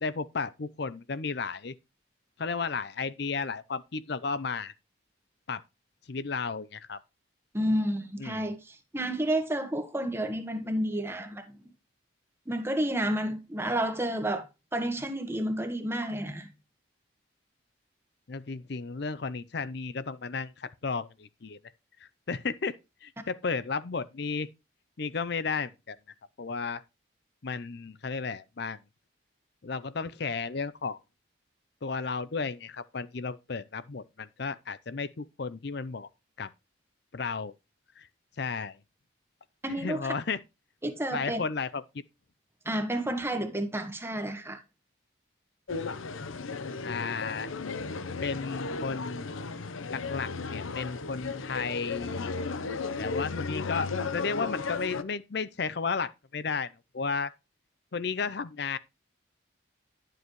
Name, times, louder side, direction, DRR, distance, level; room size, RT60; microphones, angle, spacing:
voice 1, 0.0-1.7 2.4-4.7 5.5-5.6 6.1-7.0 8.2-8.5 18.3-21.6 22.0-24.5 25.0-26.0 26.4-26.8 27.4-28.8 29.6-31.0 31.8-36.1 36.4-36.5 37.1-37.5 38.0-38.1 38.4-38.8 39.8-40.4 41.1-42.0 46.8-47.5 48.2-49.2 49.9-52.3 53.0-57.3 57.9-58.8, left 5 dB, 55° left, 0.6 m, -33 dB
voice 2, 7.5-11.6 12.5-14.5 14.7-16.5 39.6-40.1 40.8-41.4 42.6-44.6, right 1 dB, 10° right, 1.2 m, -30 dB
sound 1, 45.7-55.0, left 4 dB, 85° left, 0.8 m, -35 dB
11.5 x 7.7 x 3.1 m
head